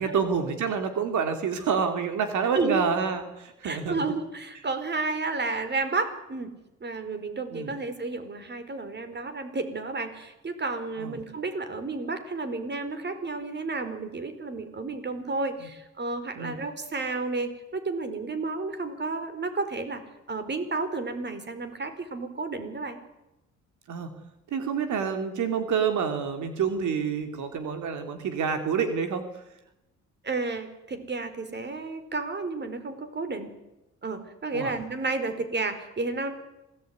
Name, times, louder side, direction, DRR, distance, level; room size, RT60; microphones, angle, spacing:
voice 1, 0.0-4.0 7.5-7.7 11.0-11.2 15.6-15.7 16.4-16.6 23.9-24.1 24.5-29.2 34.5-34.7, right 6 dB, 75° right, 7 dB, 3.2 m, -28 dB
voice 2, 3.6-6.5 6.8-20.0 20.3-23.0 30.2-33.5 34.0-36.3, right 3 dB, 35° right, 9 dB, 4.9 m, -31 dB
27.0 x 19.5 x 9.7 m, 0.94 s
cardioid pair, 90°, 30 cm